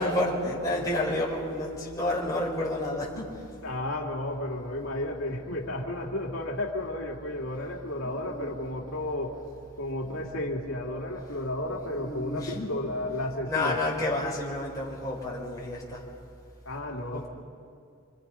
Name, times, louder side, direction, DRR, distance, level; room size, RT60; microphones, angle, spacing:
voice 1, 0.0-3.4 8.0-8.5 10.0-10.3 11.7-12.8 13.4-16.0 17.1-17.3, left 1 dB, 15° left, -4 dB, 4.9 m, -30 dB
voice 2, 3.6-9.4 9.8-13.8 16.7-17.3, left 1 dB, 80° left, 0 dB, 2.4 m, -33 dB
28.5 x 25.0 x 5.7 m, 2.4 s
head